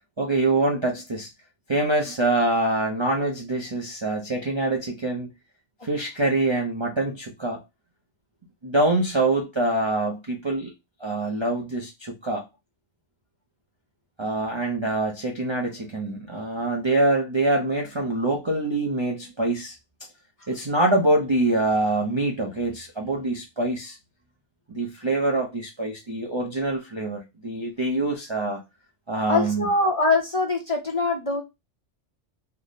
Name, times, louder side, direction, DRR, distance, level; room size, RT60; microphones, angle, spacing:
voice 1, 0.2-1.3 1.7-5.3 5.8-7.6 8.6-10.7 11.0-12.5 14.2-19.7 20.5-24.0 24.7-28.6 29.1-29.6, right 2 dB, 30° right, 0.5 m, -25 dB
voice 2, 29.3-31.4, left 3 dB, 35° left, 0.7 m, -23 dB
3.3 x 2.1 x 3.8 m
omnidirectional pair, 1.2 m